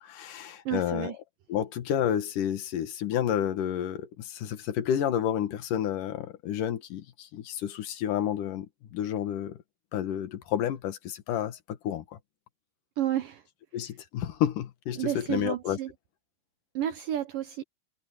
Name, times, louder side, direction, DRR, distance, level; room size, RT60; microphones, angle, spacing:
voice 1, 0.0-1.2 1.5-9.6 9.9-12.2 13.7-15.8, left 10 dB, 60° left, 2.6 m, -30 dB
voice 2, 0.7-1.2 13.0-13.4 15.0-15.9 16.8-17.6, right 12 dB, 75° right, 2.1 m, -31 dB
omnidirectional pair, 5.1 m